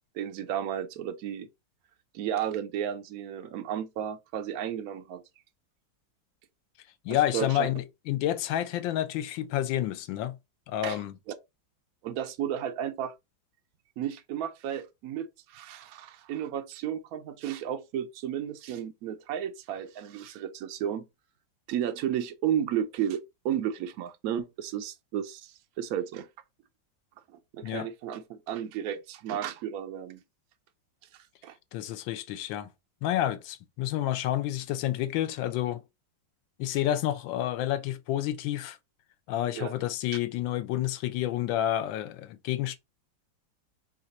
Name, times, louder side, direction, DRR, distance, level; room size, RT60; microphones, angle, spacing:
voice 1, 0.1-1.5 2.1-5.2 7.1-7.7 10.8-11.0 11.3-11.4 12.0-13.2 14.0-21.0 21.7-26.3 27.5-30.2 31.4-31.6 39.6-39.7, right 10 dB, 80° right, 0.8 m, -33 dB
voice 2, 7.0-10.4 10.7-11.1 27.6-27.9 31.7-32.7 33.0-35.8 36.6-38.8 39.3-42.8, left 12 dB, 80° left, 1.3 m, -29 dB
4.7 x 2.4 x 4.0 m
omnidirectional pair, 2.1 m